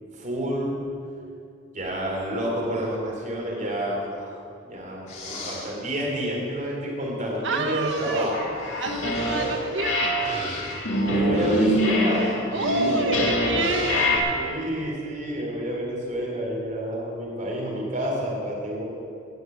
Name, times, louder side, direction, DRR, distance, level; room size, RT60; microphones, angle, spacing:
voice 1, 0.1-0.7 1.7-4.4 4.7-8.3 11.0-12.3 14.3-18.8, equal, 40° right, -3 dB, 3.6 m, -29 dB
sound 1, 5.1-5.7 7.3-7.4 7.8-14.1, left 2 dB, 40° left, 3.4 m, -37 dB
voice 2, 7.4-8.3 8.8-10.2 12.5-14.3, right 3 dB, 70° right, 4 dB, 1.4 m, -28 dB
sound 2, 8.3-9.5 9.8-14.2, left 1 dB, 75° left, 2.6 m, -24 dB
17.0 x 6.2 x 9.4 m, 2.5 s
head